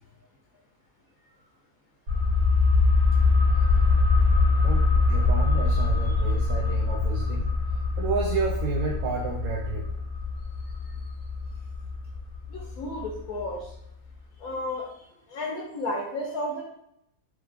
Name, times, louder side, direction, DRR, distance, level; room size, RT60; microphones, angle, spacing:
sound 1, 2.1-13.4 13.7-13.8, left 3 dB, 60° right, 1.9 m, -23 dB
voice 1, 4.6-7.5 8.0-9.9, right 4 dB, 75° right, -2 dB, 1.0 m, -30 dB
voice 2, 12.5-13.7 14.4-16.6, left 1 dB, 90° left, -3 dB, 1.2 m, -33 dB
3.5 x 3.0 x 3.3 m, 0.79 s
omnidirectional pair, 1.5 m